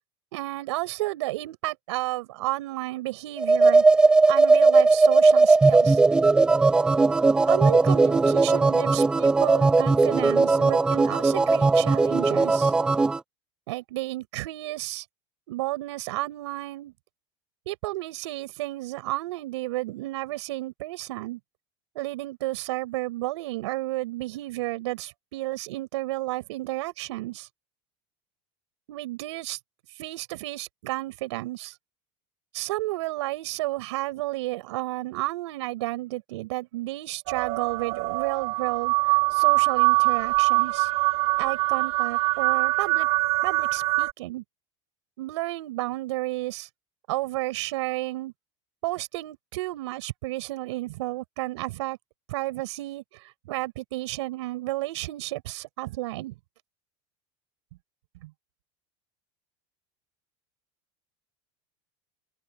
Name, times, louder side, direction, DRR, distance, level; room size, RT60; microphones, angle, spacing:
voice 1, 0.3-3.8 4.3-6.0 7.5-12.7 13.7-15.0 15.5-16.9 17.7-21.4 21.9-27.5 28.9-29.6 30.0-31.8 32.5-40.9 41.4-43.1 43.4-44.4 45.2-46.7 47.1-48.3 48.8-52.0 52.3-53.0 53.5-56.4 58.2-58.3, right 18 dB, 75° right, 7.7 m, -32 dB
sound 1, 3.4-13.2, right 3 dB, 5° right, 0.4 m, -19 dB
sound 2, 37.3-44.1, right 24 dB, 45° right, 5.8 m, -23 dB
open air
supercardioid pair, 180°, 15 cm